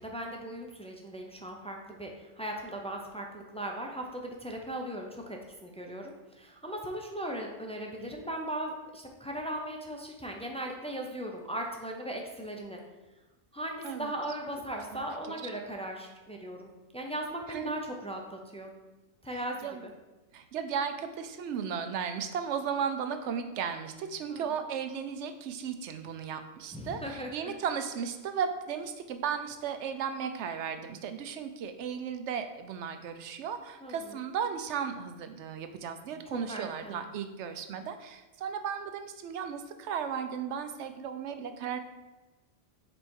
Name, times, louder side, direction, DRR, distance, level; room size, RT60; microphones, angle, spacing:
voice 1, 0.0-12.8 13.5-18.7 19.2-19.9 24.3-24.6 26.7-27.5 33.8-34.2 36.3-37.1, right 1 dB, 10° left, 1 dB, 0.4 m, -38 dB
voice 2, 14.9-15.4 17.5-17.7 19.6-19.8 20.3-41.8, right 7 dB, 75° right, 8 dB, 0.9 m, -35 dB
5.3 x 4.3 x 4.4 m, 1.1 s
omnidirectional pair, 1.2 m